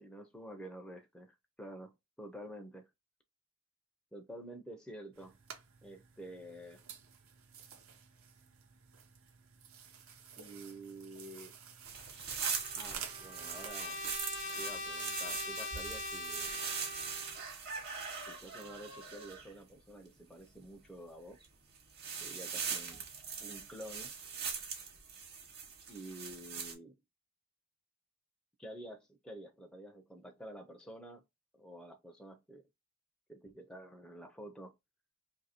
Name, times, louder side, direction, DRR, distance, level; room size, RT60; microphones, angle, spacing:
voice 1, 0.0-1.9 2.2-2.9 4.1-5.4 5.8-6.8 10.4-11.6 12.8-14.0 14.5-16.5 18.3-21.5 22.2-23.1 23.4-24.1 25.9-27.0 28.6-31.2 31.5-32.6 33.3-34.7, right 1 dB, 5° left, 0.4 m, -49 dB
sound 1, 5.1-13.7, right 7 dB, 65° right, 0.7 m, -51 dB
sound 2, 11.8-19.5 21.3-21.5 21.8-26.7, right 6 dB, 45° right, 1.1 m, -41 dB
Trumpet, 12.5-17.4, left 3 dB, 55° left, 0.6 m, -42 dB
2.7 x 2.7 x 4.1 m
head